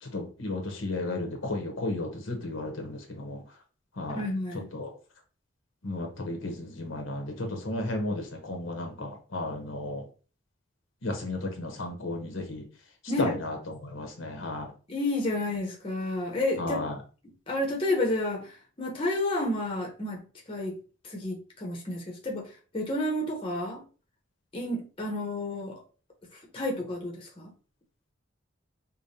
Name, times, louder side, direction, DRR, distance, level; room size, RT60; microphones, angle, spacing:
voice 1, 0.0-3.4 4.0-4.2 4.7-4.9 5.8-10.0 11.0-12.6 13.2-13.6 13.8-14.7 16.6-17.0, left 2 dB, 75° left, 0.9 m, -33 dB
voice 2, 4.1-4.7 13.1-13.3 14.9-16.9 17.5-20.8 21.0-23.8 24.5-25.8 26.5-27.5, left 1 dB, 25° left, 0.8 m, -31 dB
5.0 x 2.2 x 2.7 m
head